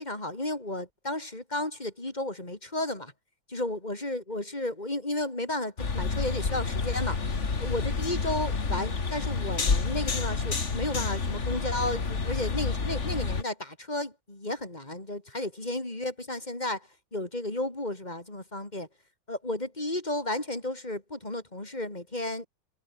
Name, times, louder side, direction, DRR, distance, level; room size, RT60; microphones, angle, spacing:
voice 1, 0.0-3.1 3.5-7.2 7.6-18.9 19.3-22.5, left 1 dB, 20° left, 4.2 m, -33 dB
sound 1, 5.8-13.4, left 4 dB, 35° left, 2.4 m, -29 dB
omnidirectional pair, 2.2 m